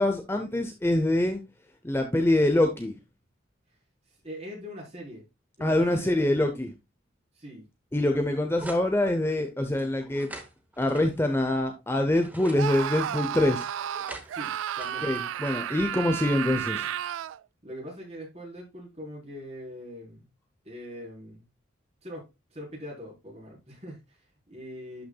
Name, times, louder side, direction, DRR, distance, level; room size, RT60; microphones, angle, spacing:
voice 1, 0.0-1.4 1.8-2.9 5.6-6.7 7.9-10.3 10.8-13.7 15.0-16.9, left 1 dB, 10° left, 0.7 m, -25 dB
voice 2, 4.2-5.2 5.6-6.5 7.3-7.7 14.3-15.1 17.6-20.3 20.6-21.4 22.0-25.0, equal, 35° right, 4.3 m, -42 dB
sound 1, 8.6-8.9 9.8-11.6 12.0-12.6 13.6-16.1, right 1 dB, 10° right, 1.2 m, -45 dB
Screaming, 12.6-17.4, right 10 dB, 75° right, 0.3 m, -32 dB
11.5 x 5.8 x 2.3 m
head